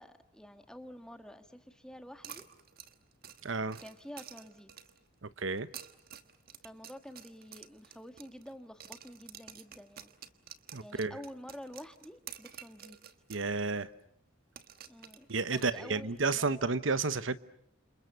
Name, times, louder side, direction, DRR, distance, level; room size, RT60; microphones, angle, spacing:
voice 1, 0.0-2.5 3.8-4.7 6.6-10.1 10.8-13.0 14.9-16.7, equal, 5° left, 7 dB, 1.5 m, -49 dB
sound 1, 2.2-5.1 5.6-8.5 8.8-13.5 13.8-13.9 14.6-16.2, right 9 dB, 50° right, 1.4 m, -50 dB
voice 2, 3.4-3.8 5.2-5.7 10.7-11.2 13.3-13.9 15.3-17.4, right 4 dB, 65° right, 14 dB, 1.1 m, -31 dB
30.0 x 27.5 x 6.8 m, 0.67 s
head